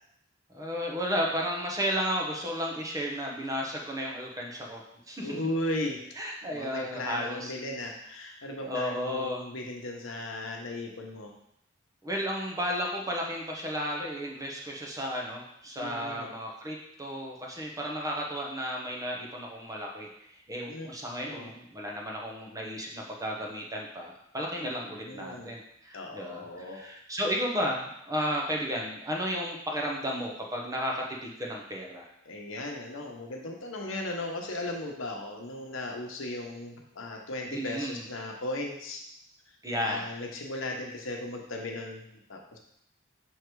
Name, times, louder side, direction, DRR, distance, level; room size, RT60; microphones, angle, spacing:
voice 1, 0.5-4.8 5.1-5.4 6.2-7.5 8.7-9.4 12.0-20.1 20.5-32.1 37.5-38.0 39.6-40.0, equal, 15° right, -1 dB, 0.9 m, -33 dB
voice 2, 5.2-6.0 6.5-11.3 15.8-16.3 20.6-20.9 21.2-21.5 24.6-25.5 25.9-26.8 32.2-39.0 39.8-42.0 42.3-42.6, left 1 dB, 80° left, 1 dB, 1.0 m, -36 dB
6.4 x 3.3 x 4.6 m, 0.75 s
head